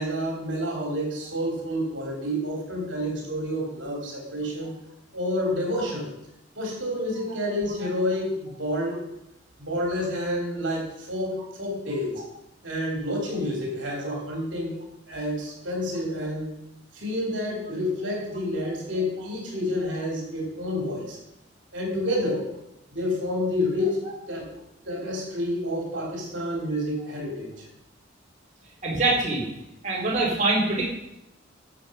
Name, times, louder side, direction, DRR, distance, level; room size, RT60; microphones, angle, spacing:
voice 1, 0.0-4.7 5.1-6.1 6.5-9.0 9.6-12.1 12.6-14.8 15.1-16.6 16.9-21.2 21.7-22.5 22.9-24.0 24.3-24.5 24.8-27.7, left 1 dB, 70° right, -1 dB, 3.3 m, -29 dB
voice 2, 28.8-29.4 29.8-30.9, right 2 dB, 40° right, -5 dB, 3.0 m, -24 dB
11.5 x 7.0 x 5.2 m, 0.85 s
head